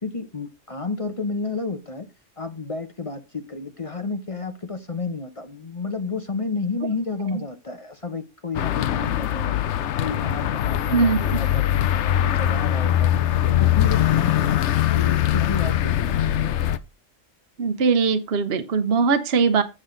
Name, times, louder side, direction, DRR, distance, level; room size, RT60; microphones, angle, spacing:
voice 1, 0.0-2.1 2.4-9.6 10.0-13.1 13.4-14.6 14.9-16.4, left 3 dB, 30° left, 0.8 m, -31 dB
sound 1, 8.5-16.8, left 11 dB, 70° left, 0.9 m, -22 dB
voice 2, 10.9-11.4 17.6-19.6, right 5 dB, 55° right, 1.1 m, -21 dB
7.9 x 7.5 x 3.8 m
omnidirectional pair, 1.3 m